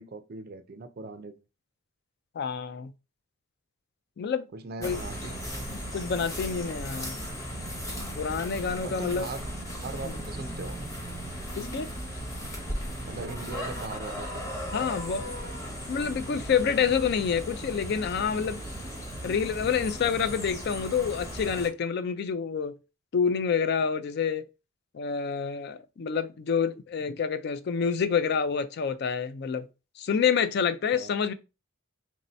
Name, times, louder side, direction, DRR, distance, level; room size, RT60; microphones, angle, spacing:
voice 1, 0.0-1.4 4.5-5.4 8.8-9.4 9.7-10.8 13.0-14.4 30.9-31.1, right 3 dB, 45° right, 0.4 m, -39 dB
voice 2, 2.4-2.9 4.2-4.5 4.8-5.0 5.9-7.2 8.2-9.3 10.0-10.2 11.6-11.9 14.7-15.3 15.9-18.6 19.2-22.8 23.1-24.5 24.9-29.7 30.0-31.3, left 6 dB, 50° left, 0.3 m, -28 dB
sound 1, 4.8-21.7, equal, 15° left, 0.8 m, -37 dB
3.1 x 2.7 x 4.2 m
head